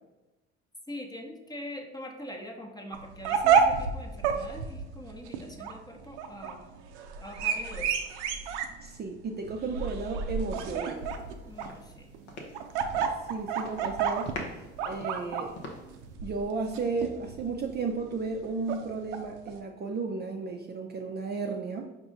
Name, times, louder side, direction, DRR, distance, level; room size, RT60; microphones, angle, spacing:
voice 1, 0.9-6.7 7.2-8.0 11.4-12.1, left 1 dB, 10° left, 4 dB, 0.7 m, -43 dB
sound 1, 2.9-19.6, right 6 dB, 80° right, 0.5 m, -30 dB
voice 2, 8.8-11.1 13.0-15.6 16.2-21.9, right 4 dB, 30° right, 2 dB, 0.4 m, -34 dB
sound 2, 11.1-11.3 11.6-13.3 13.5-13.9 14.2-16.1, left 1 dB, 85° left, 0.8 m, -42 dB
4.8 x 2.7 x 3.7 m, 1.0 s
hypercardioid pair, 55°, 34 cm